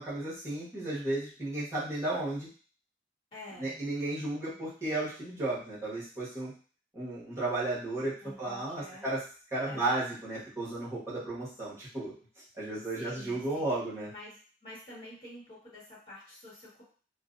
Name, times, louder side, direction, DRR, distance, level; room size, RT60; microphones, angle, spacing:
voice 1, 0.0-2.5 3.6-6.5 6.9-9.2 9.5-12.1 12.5-14.1, right 2 dB, 15° right, -9 dB, 1.1 m, -34 dB
voice 2, 3.3-3.8 8.2-9.1 9.7-10.0 12.9-13.6 14.1-16.8, left 1 dB, 30° left, -8 dB, 1.2 m, -48 dB
2.5 x 2.1 x 2.4 m, 0.41 s
head